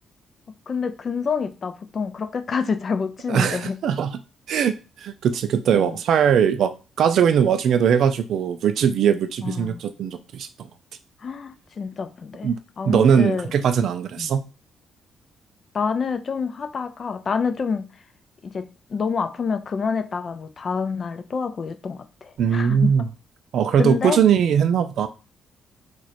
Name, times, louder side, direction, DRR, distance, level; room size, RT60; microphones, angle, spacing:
voice 1, 0.7-3.8 5.7-6.0 9.4-9.8 11.2-12.5 12.8-13.5 14.2-14.3 15.7-17.9 18.4-22.9 23.8-24.2, left 5 dB, 45° left, 0.5 m, -27 dB
voice 2, 3.3-4.2 4.5-10.5 12.4-12.6 12.9-14.4 22.4-23.1 23.5-25.1, right 8 dB, 70° right, 0.4 m, -20 dB
3.1 x 2.5 x 4.1 m
cardioid pair, 90°, 0 cm